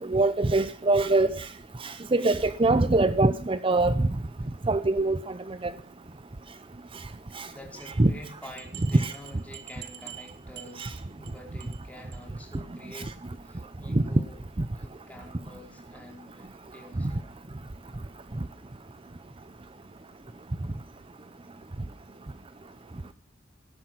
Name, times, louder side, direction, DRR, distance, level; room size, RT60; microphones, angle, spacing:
voice 1, 0.1-1.5 1.8-3.9 4.7-5.2 5.6-5.7 7.3-7.5 8.0-8.1 8.9-9.1 10.8-10.9 12.9-13.0 13.9-14.0, right 2 dB, 30° right, 0.6 m, -23 dB
voice 2, 7.3-13.1 13.4-14.4 14.7-17.3, left 1 dB, 10° left, 4.8 m, -48 dB
sound 1, 8.6-11.3 11.6-11.8 12.1-12.2 12.5-12.6 12.9-13.0, right 12 dB, 60° right, 1.8 m, -45 dB
17.0 x 12.5 x 5.9 m
head